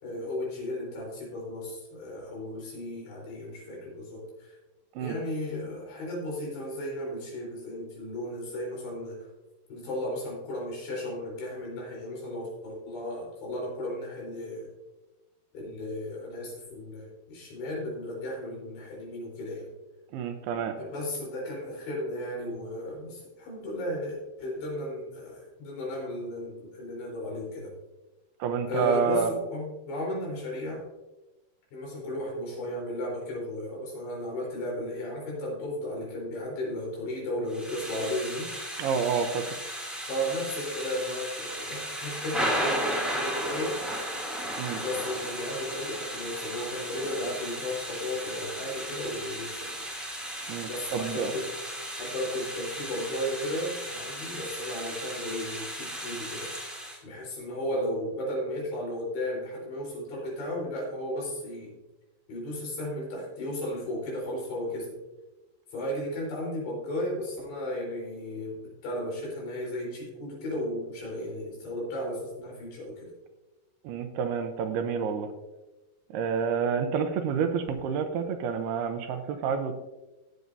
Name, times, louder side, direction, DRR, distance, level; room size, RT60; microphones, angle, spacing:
voice 1, 0.0-4.6 5.0-9.3 9.7-14.7 15.5-19.7 20.7-27.7 28.7-30.9 31.7-38.5 40.1-43.8 44.7-49.7 50.6-51.5 52.0-61.7 62.3-64.9 65.7-73.1, left 1 dB, 80° left, -3 dB, 6.2 m, -34 dB
voice 2, 20.1-20.8 28.4-29.3 38.8-39.6 44.6-44.8 50.5-51.3 73.8-75.3 76.1-79.8, right 6 dB, 80° right, 7 dB, 2.6 m, -29 dB
Thunder / Rain, 37.5-57.0, equal, ahead, 1.3 m, -35 dB
17.5 x 7.7 x 2.7 m, 1.1 s
omnidirectional pair, 4.8 m